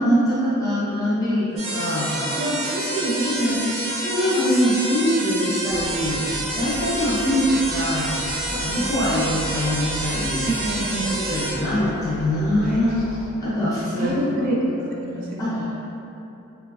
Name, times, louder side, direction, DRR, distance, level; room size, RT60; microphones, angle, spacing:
voice 1, 0.0-2.1 3.2-3.6 4.0-6.2 6.5-8.1 8.5-10.4 11.1-13.0 13.4-14.5 15.4-15.7, equal, 15° left, -11 dB, 0.6 m, -23 dB
sound 1, 1.6-11.5, right 1 dB, 65° right, 0.7 m, -28 dB
voice 2, 1.9-3.5 8.6-8.9 10.4-11.2 12.6-13.0 13.6-13.7 14.0-14.7 15.0-15.7, right 2 dB, 40° right, -4 dB, 0.4 m, -27 dB
sound 2, 5.7-13.3, equal, 70° left, 0.7 m, -37 dB
2.9 x 2.3 x 2.3 m, 2.8 s
head